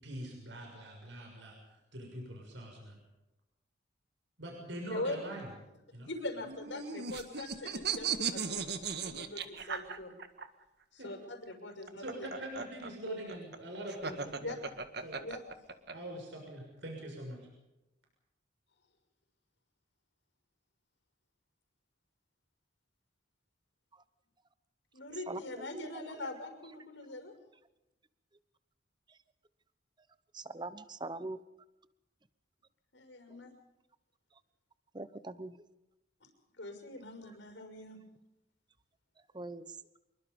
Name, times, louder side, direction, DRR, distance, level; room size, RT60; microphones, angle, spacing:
voice 1, 0.0-3.0 4.4-5.5 5.9-6.1 11.0-11.1 12.0-14.6 15.0-15.2 15.9-17.4, right 1 dB, 75° right, 1 dB, 6.4 m, -44 dB
voice 2, 6.1-10.2 10.9-12.3 12.5-12.6 13.0-13.2 14.3-14.6 14.9-15.6 24.9-27.3 32.9-33.5 36.6-38.0, left 2 dB, 75° left, 5 dB, 6.2 m, -42 dB
sound 1, 6.4-10.4 11.7-15.9, right 6 dB, 60° right, 1.8 m, -37 dB
voice 3, 30.3-31.4 34.9-35.5 39.3-39.6, right 2 dB, 25° right, 14 dB, 1.0 m, -41 dB
26.0 x 23.0 x 5.4 m, 0.95 s
head